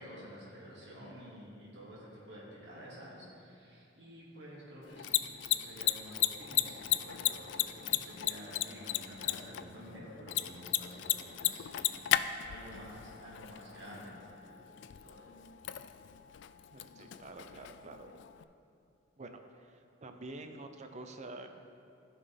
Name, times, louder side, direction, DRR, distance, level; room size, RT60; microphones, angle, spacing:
voice 1, 0.0-15.4, equal, 70° right, -6 dB, 2.2 m, -50 dB
Mechanisms, 4.8-18.4, left 13 dB, 65° left, 0.3 m, -36 dB
voice 2, 16.7-18.1 19.2-21.5, right 2 dB, 40° right, 6 dB, 0.6 m, -48 dB
15.0 x 5.7 x 3.5 m, 2.6 s
head